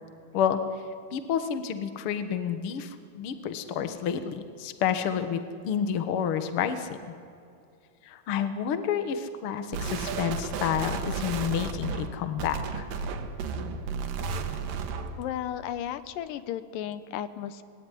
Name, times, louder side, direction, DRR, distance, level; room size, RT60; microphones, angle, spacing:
voice 1, 1.1-7.0 8.0-12.9, left 8 dB, 55° left, 9 dB, 1.7 m, -29 dB
sound 1, 9.7-15.2, right 5 dB, 80° right, 3.2 m, -33 dB
voice 2, 15.2-17.6, left 10 dB, 80° left, 12 dB, 2.5 m, -34 dB
26.0 x 21.0 x 9.9 m, 2.4 s
omnidirectional pair, 3.9 m